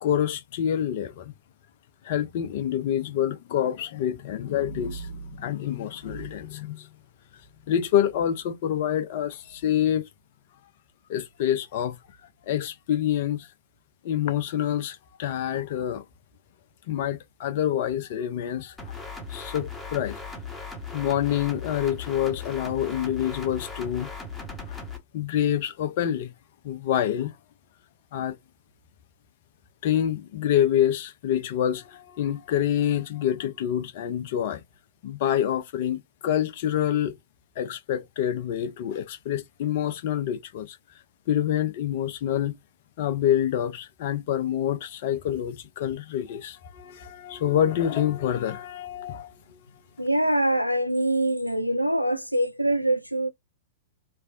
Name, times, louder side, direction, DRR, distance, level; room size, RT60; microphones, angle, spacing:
voice 1, 0.0-1.3 2.0-6.9 7.7-10.1 11.1-12.0 12.5-13.5 14.0-16.0 16.9-18.9 19.3-20.2 20.9-24.1 24.7-24.8 25.1-26.3 26.6-27.3 28.1-28.3 29.8-34.6 35.0-37.2 37.6-40.8 41.3-42.5 43.0-49.6, left 10 dB, 45° left, 0.6 m, -27 dB
sound 1, 18.8-25.0, left 3 dB, 5° left, 1.2 m, -38 dB
voice 2, 50.0-53.3, right 1 dB, 90° left, 0.4 m, -24 dB
3.3 x 3.1 x 2.4 m
figure-of-eight pair, 100°, 0 cm